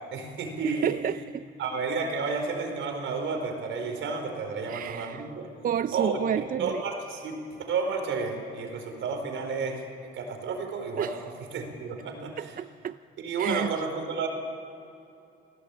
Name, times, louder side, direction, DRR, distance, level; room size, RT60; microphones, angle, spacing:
voice 1, 0.1-1.0 1.6-5.5 5.9-6.2 6.6-9.8 10.1-11.1 11.5-12.5 13.2-14.3, right 4 dB, 75° right, 5 dB, 4.6 m, -31 dB
voice 2, 0.6-1.5 4.7-5.3 5.6-6.8 11.0-11.2 12.4-13.0 13.4-13.8, right 9 dB, 45° right, 13 dB, 0.5 m, -31 dB
28.5 x 18.0 x 8.6 m, 2.7 s
cardioid pair, 90°, 20 cm